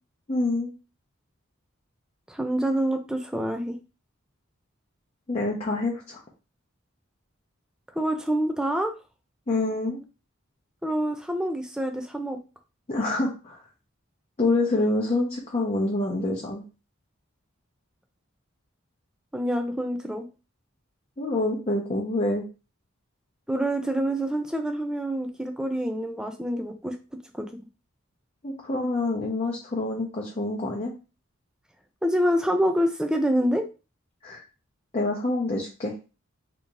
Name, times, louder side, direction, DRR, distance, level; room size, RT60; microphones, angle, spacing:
voice 1, 0.3-0.7 5.3-6.2 9.5-10.0 12.9-13.6 14.4-16.6 21.2-22.4 28.4-30.9 34.2-34.4 34.9-35.9, left 2 dB, 30° left, -4 dB, 0.7 m, -26 dB
voice 2, 2.3-3.8 7.9-8.9 10.8-12.4 19.3-20.3 23.5-27.0 27.3-27.6 32.0-33.6, equal, 5° right, 5 dB, 0.4 m, -26 dB
2.9 x 2.7 x 3.6 m, 0.32 s
head